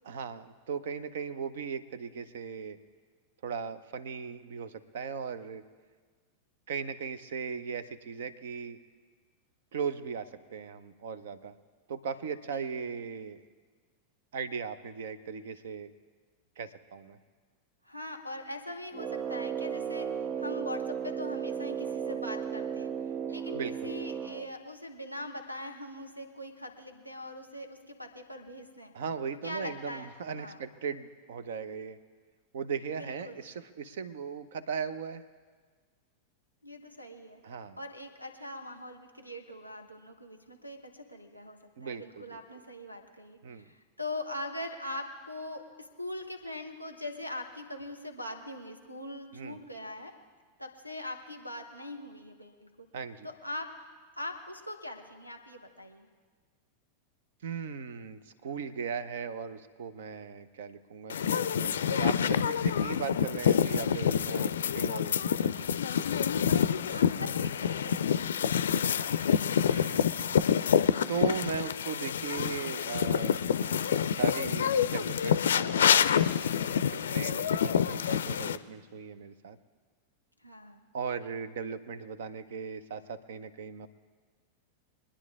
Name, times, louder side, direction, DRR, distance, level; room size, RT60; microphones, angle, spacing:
voice 1, 0.0-2.8 3.4-5.6 6.7-8.8 9.7-11.5 11.9-13.4 14.3-15.9 16.6-17.2 23.5-23.9 28.9-32.0 32.5-35.2 37.4-37.8 41.8-42.4 43.4-43.7 49.3-49.6 52.9-53.3 57.4-65.1 65.4-65.5 69.7-70.1 71.1-73.4 74.1-75.9 76.9-79.6 80.9-83.9, right 6 dB, 60° right, 14 dB, 0.7 m, -38 dB
voice 2, 12.5-12.9 17.8-22.9 23.3-28.9 29.3-30.1 30.4-30.6 32.9-33.4 36.6-37.4 37.8-50.1 50.6-52.9 53.2-53.7 54.2-56.1 66.9-68.3 80.4-80.8, left 1 dB, 90° right, 6 dB, 1.3 m, -42 dB
Brass instrument, 18.9-24.5, right 8 dB, 30° right, 0.4 m, -35 dB
sound 1, 61.1-78.6, left 8 dB, 65° left, 0.4 m, -27 dB
24.0 x 10.0 x 3.6 m, 1.5 s
figure-of-eight pair, 90°, 0 cm